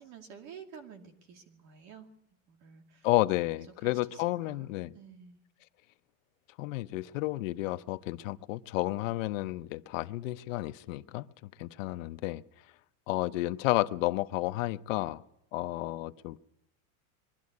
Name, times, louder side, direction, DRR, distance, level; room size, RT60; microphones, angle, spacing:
voice 1, 0.0-2.1 2.5-3.1 3.8-5.4, right 7 dB, 40° right, 5 dB, 2.4 m, -51 dB
voice 2, 3.0-4.9 6.6-11.3 11.6-12.4 13.1-15.2 15.5-16.4, left 18 dB, 65° left, 12 dB, 0.8 m, -31 dB
23.0 x 12.5 x 9.5 m, 0.84 s
supercardioid pair, 160°, 42 cm